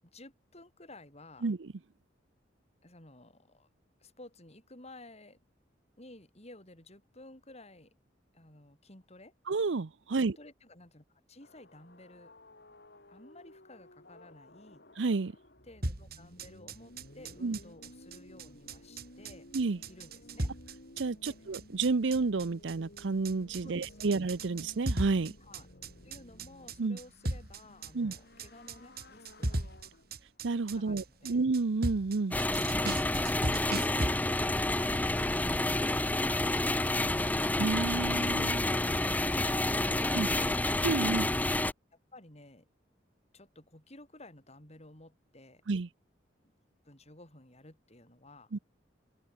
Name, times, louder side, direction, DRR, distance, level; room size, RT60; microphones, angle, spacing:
voice 1, 0.0-1.5 2.8-3.7 4.0-5.4 6.0-7.9 8.3-9.3 10.2-12.3 13.1-14.8 15.6-19.5 19.9-20.5 21.2-21.4 23.6-24.1 25.4-25.7 26.0-29.7 30.7-31.4 41.9-42.7 43.3-45.6 46.8-48.5, left 2 dB, 35° left, 8.0 m, -54 dB
voice 2, 1.4-1.7 9.5-10.4 15.0-15.3 17.4-17.6 19.5-19.8 21.0-25.3 26.8-27.0 27.9-28.1 30.4-32.4 37.6-38.6 40.1-40.3 40.8-41.3 45.7-45.9 48.5-48.6, right 3 dB, 80° right, 0.7 m, -30 dB
sound 1, 11.4-30.5, left 1 dB, 60° left, 5.9 m, -55 dB
sound 2, 15.8-34.1, right 1 dB, 55° right, 3.9 m, -37 dB
sound 3, 32.3-41.7, left 1 dB, 10° left, 0.6 m, -29 dB
head